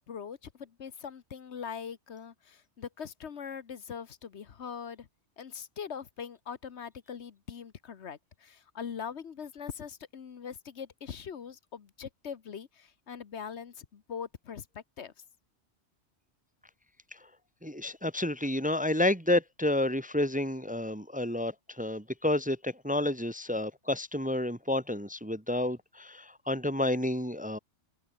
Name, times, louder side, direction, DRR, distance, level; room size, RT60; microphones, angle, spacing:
voice 1, 0.1-5.1 5.4-15.1, left 7 dB, 70° left, 1.4 m, -42 dB
voice 2, 17.6-27.6, left 1 dB, 10° right, 1.0 m, -30 dB
omnidirectional pair, 1.2 m